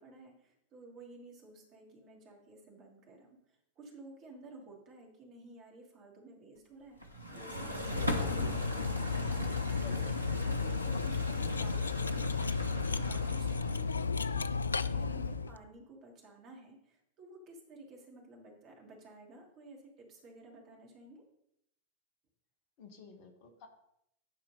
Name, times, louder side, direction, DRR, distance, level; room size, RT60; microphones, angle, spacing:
voice 1, 0.0-7.0 7.3-8.5 9.4-10.1 10.5-12.4 12.9-14.5 14.8-21.2, right 2 dB, 35° right, 0 dB, 2.5 m, -53 dB
sound 1, 7.0-14.0, equal, 85° right, 1.2 m, -39 dB
Cutlery silverware, 7.8-15.6, left 5 dB, 75° left, 0.3 m, -33 dB
voice 2, 8.1-8.4 9.8-10.1 22.8-23.7, left 3 dB, 45° left, 5 dB, 1.4 m, -51 dB
10.0 x 4.4 x 5.5 m, 0.78 s
figure-of-eight pair, 90°, 0 cm